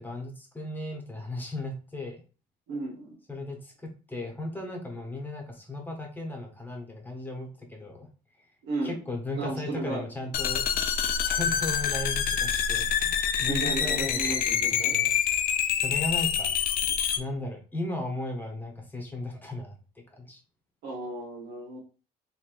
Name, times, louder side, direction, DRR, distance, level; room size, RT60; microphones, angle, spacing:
voice 1, 0.0-2.2 3.3-8.1 8.8-10.8 11.2-15.1 15.7-16.5 17.2-19.8 20.2-20.4, left 2 dB, 10° left, 2 dB, 1.0 m, -36 dB
voice 2, 2.7-3.2 8.6-9.0 9.4-10.0 13.5-14.9 20.8-21.8, right 2 dB, 80° right, -5 dB, 1.2 m, -34 dB
sound 1, 10.3-17.2, left 8 dB, 60° left, 0.4 m, -26 dB
3.2 x 2.7 x 2.5 m, 0.35 s
cardioid pair, 110°, 17 cm